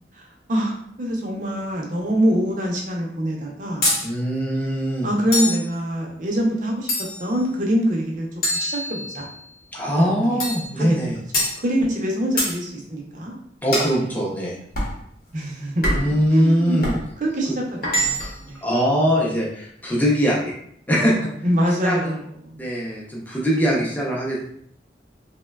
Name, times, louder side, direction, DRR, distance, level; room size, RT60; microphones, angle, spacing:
voice 1, 0.1-3.9 5.0-8.3 8.5-9.3 10.0-10.4 10.8-11.0 11.6-13.3 13.9-14.0 15.3-16.0 16.3-16.8 17.2-17.8 18.4-18.6 21.4-22.7 23.5-23.8, equal, 45° right, 0 dB, 0.5 m, -24 dB
sound 1, 3.8-4.1 5.3-5.7 6.9-7.3 8.4-9.3 10.4-10.7 11.3-11.6 12.4-12.6 13.7-14.0 14.7-15.0 15.8-16.2 16.8-17.0 17.8-18.4, left 1 dB, 50° left, 0.8 m, -24 dB
voice 2, 4.0-5.1 9.7-11.2 13.6-14.6 15.9-17.0 18.6-20.5 20.9-21.2 21.8-22.2 22.6-24.4, equal, 10° left, -4 dB, 0.5 m, -21 dB
3.1 x 2.1 x 2.2 m, 0.68 s
head